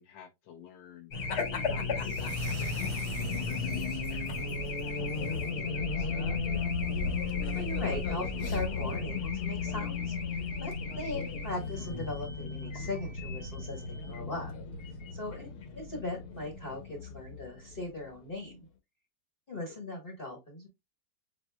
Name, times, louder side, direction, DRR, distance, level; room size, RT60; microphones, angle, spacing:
voice 1, 0.0-6.1 19.5-19.8, left 8 dB, 85° left, 1.4 m, -52 dB
Race car auto racing / Alarm, 1.1-18.1, left 4 dB, 65° left, 1.5 m, -34 dB
sound 1, 2.0-5.3, right 8 dB, 90° right, 1.4 m, -45 dB
voice 2, 7.2-10.1 10.6-13.8 14.1-14.5 15.1-18.7 19.5-20.7, left 2 dB, 35° left, 1.3 m, -39 dB
7.9 x 2.7 x 2.2 m
omnidirectional pair, 1.9 m